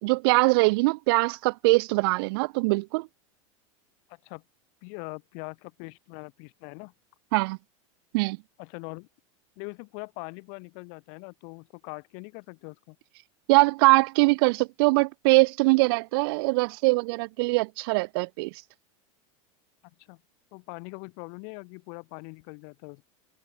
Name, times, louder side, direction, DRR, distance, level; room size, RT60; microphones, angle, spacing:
voice 1, 0.0-3.1 7.3-7.6 8.1-8.4 13.5-18.5, right 26 dB, 45° right, 0.6 m, -22 dB
voice 2, 4.1-4.4 4.8-6.9 8.6-9.1 9.6-13.0 20.1-20.2 20.5-23.0, left 40 dB or more, 45° left, 5.9 m, -42 dB
supercardioid pair, 170°, 17 cm